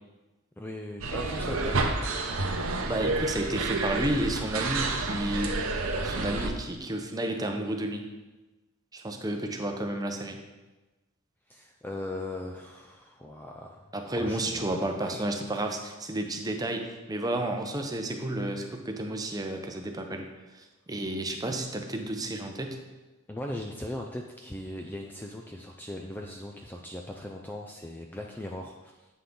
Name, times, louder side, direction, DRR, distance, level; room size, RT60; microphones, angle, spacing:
voice 1, 0.6-1.8 2.7-3.7 11.5-13.9 14.1-15.2 23.3-29.1, left 1 dB, 10° left, 1 dB, 0.4 m, -39 dB
sound 1, 1.0-6.5, right 3 dB, 75° right, 0.8 m, -29 dB
voice 2, 2.8-5.6 6.0-8.1 8.9-10.4 13.9-20.3 20.5-22.8, right 1 dB, 20° right, 4 dB, 0.7 m, -31 dB
8.3 x 5.8 x 3.8 m, 1.1 s
head